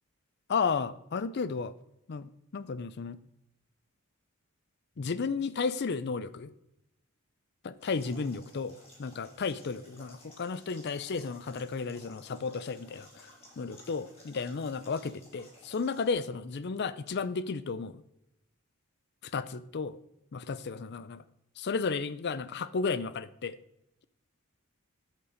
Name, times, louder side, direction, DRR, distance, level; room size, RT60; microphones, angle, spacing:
voice 1, 0.5-1.7 2.1-3.2 5.0-6.5 7.6-13.3 13.6-18.0 19.2-20.0 20.3-21.2 21.6-23.6, left 5 dB, 50° left, 16 dB, 0.4 m, -33 dB
sound 1, 7.8-16.1, equal, 25° left, 3.3 m, -56 dB
8.2 x 7.4 x 5.0 m, 0.83 s
head